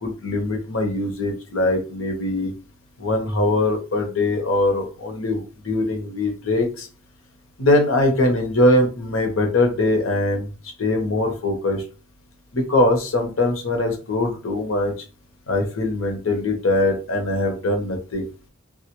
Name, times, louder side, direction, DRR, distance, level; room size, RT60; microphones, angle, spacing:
voice 1, 0.0-2.5 3.0-6.9 7.6-10.5 10.8-11.8 12.5-14.9 15.5-18.3, left 2 dB, 70° left, 3 dB, 0.9 m, -22 dB
2.8 x 2.3 x 3.0 m, 0.34 s
head